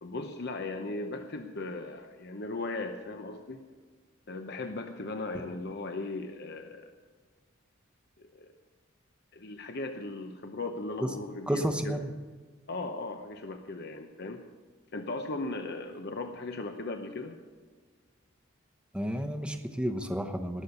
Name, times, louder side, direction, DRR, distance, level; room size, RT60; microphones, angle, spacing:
voice 1, 0.0-3.6 4.3-6.9 8.2-8.5 9.3-12.0 12.7-14.4 14.9-17.4, left 2 dB, 50° left, 6 dB, 0.8 m, -37 dB
voice 2, 11.5-12.1 18.9-20.6, equal, 5° right, 6 dB, 0.9 m, -31 dB
19.5 x 7.0 x 7.0 m, 1.5 s
head